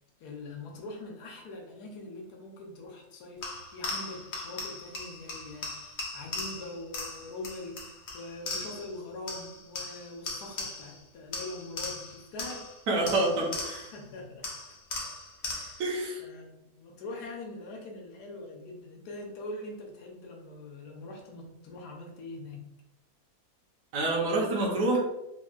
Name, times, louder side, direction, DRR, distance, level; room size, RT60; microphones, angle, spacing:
voice 1, 0.2-12.7 13.9-14.5 15.5-15.8 16.2-22.7, left 2 dB, 75° left, 0 dB, 1.2 m, -43 dB
sound 1, 3.4-9.0 9.3-11.0 11.3-14.0 14.4-15.9, left 3 dB, 60° left, 0.7 m, -38 dB
voice 2, 12.9-13.9 15.8-16.2 23.9-25.0, right 2 dB, 70° right, -3 dB, 1.1 m, -27 dB
3.4 x 2.2 x 2.3 m, 0.89 s
omnidirectional pair, 1.7 m